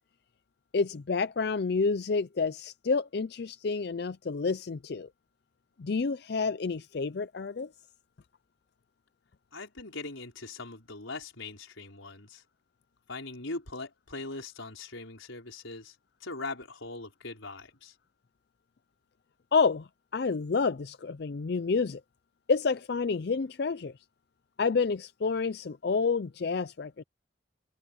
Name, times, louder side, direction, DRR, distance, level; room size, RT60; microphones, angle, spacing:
voice 1, 0.7-5.1 5.8-7.7 19.5-22.0 22.5-23.9 24.6-27.0, left 4 dB, 55° left, 0.4 m, -29 dB
voice 2, 9.5-12.4 13.1-15.9 16.2-17.9, left 3 dB, 85° left, 5.1 m, -41 dB
open air
head